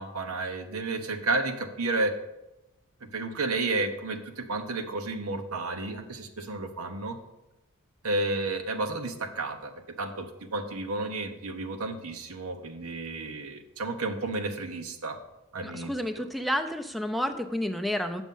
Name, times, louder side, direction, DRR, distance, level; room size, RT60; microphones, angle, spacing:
voice 1, 0.0-2.1 3.0-7.2 8.0-9.7 10.0-15.2 15.5-16.2, right 3 dB, 85° right, 6 dB, 1.0 m, -32 dB
voice 2, 15.6-18.2, equal, ahead, 6 dB, 0.4 m, -30 dB
8.4 x 6.2 x 5.4 m, 0.96 s
head